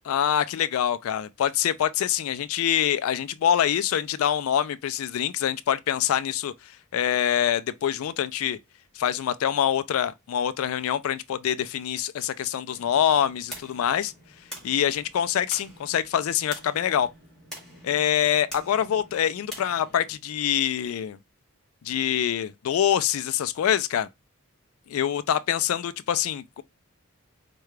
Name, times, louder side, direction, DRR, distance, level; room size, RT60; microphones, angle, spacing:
voice 1, 0.1-8.6 9.0-14.1 14.6-17.1 17.8-21.2 21.8-24.1 24.9-26.6, left 9 dB, 70° left, 0.3 m, -25 dB
sound 1, 12.7-20.1, equal, ahead, 1.9 m, -45 dB
4.7 x 2.2 x 3.1 m
head